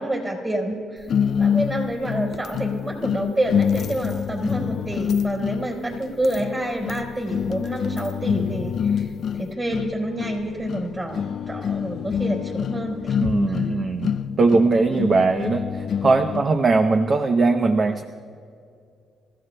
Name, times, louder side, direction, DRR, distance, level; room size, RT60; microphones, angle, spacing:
voice 1, 0.0-13.2 13.5-13.6, right 1 dB, 25° right, 1 dB, 4.1 m, -28 dB
sound 1, 1.1-16.5, left 7 dB, 60° left, 0.3 m, -26 dB
voice 2, 13.2-18.0, right 3 dB, 40° right, 7 dB, 0.7 m, -20 dB
27.5 x 15.0 x 2.2 m, 2.4 s
cardioid pair, 90°, 0 cm